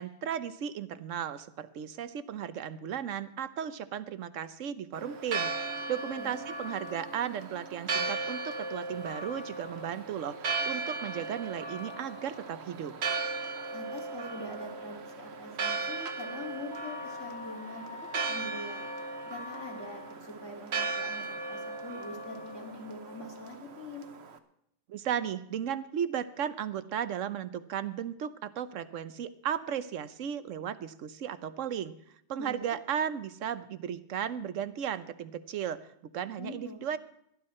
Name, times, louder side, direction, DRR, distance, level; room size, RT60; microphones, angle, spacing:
voice 1, 0.0-5.5 5.9-12.9 24.9-31.9 32.3-37.0, right 9 dB, 80° right, 14 dB, 1.1 m, -35 dB
Church bell, 4.9-24.4, right 4 dB, 60° right, 1.2 m, -37 dB
voice 2, 13.7-17.9 18.2-18.8 19.2-24.1 32.4-32.6 36.4-36.8, left 1 dB, 70° left, 0 dB, 2.6 m, -43 dB
Wind instrument woodwind instrument, 16.7-20.2, left 4 dB, 45° left, 1.4 m, -46 dB
18.0 x 11.5 x 4.3 m, 0.73 s
omnidirectional pair, 1.3 m